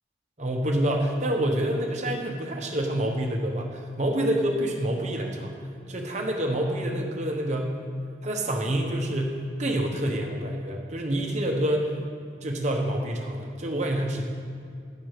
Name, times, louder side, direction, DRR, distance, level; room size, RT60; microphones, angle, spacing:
voice 1, 0.4-5.5 5.9-7.8 8.2-11.9 12.4-14.2, right 1 dB, 40° right, 1 dB, 1.0 m, -27 dB
10.5 x 4.7 x 6.6 m, 2.3 s
head